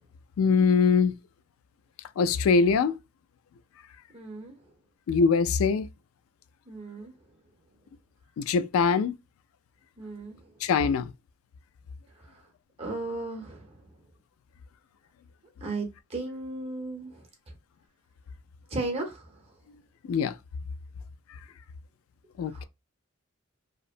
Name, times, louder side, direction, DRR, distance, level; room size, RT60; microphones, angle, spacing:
voice 1, 0.4-1.1 2.2-3.0 5.1-5.9 8.4-9.2 10.6-11.1 20.1-20.3 22.4-22.6, left 5 dB, 90° left, 0.3 m, -23 dB
voice 2, 4.1-4.5 6.7-7.1 10.0-10.4 12.8-13.7 15.6-17.2 18.7-19.2 22.5-22.7, right 2 dB, 30° right, 0.8 m, -35 dB
2.8 x 2.0 x 2.4 m
head